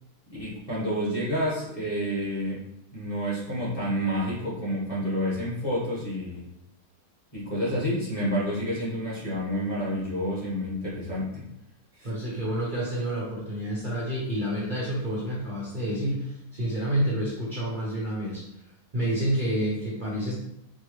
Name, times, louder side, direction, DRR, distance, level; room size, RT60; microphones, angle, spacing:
voice 1, 0.4-2.6 2.9-6.5 7.3-11.5 12.0-12.1, equal, 25° left, -8 dB, 1.4 m, -29 dB
voice 2, 12.0-18.4 18.9-20.3, right 1 dB, 40° right, -6 dB, 0.8 m, -29 dB
4.5 x 2.3 x 3.2 m, 0.79 s
omnidirectional pair, 1.5 m